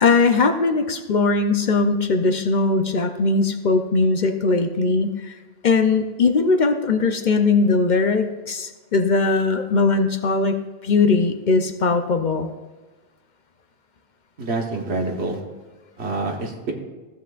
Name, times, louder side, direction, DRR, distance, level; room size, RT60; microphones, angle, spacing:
voice 1, 0.0-5.3 5.6-10.6 10.8-12.5, left 3 dB, 50° left, 7 dB, 0.7 m, -20 dB
voice 2, 14.4-15.4 16.0-16.7, right 3 dB, 85° right, 2 dB, 1.5 m, -26 dB
15.0 x 8.0 x 2.4 m, 1.3 s
omnidirectional pair, 1.1 m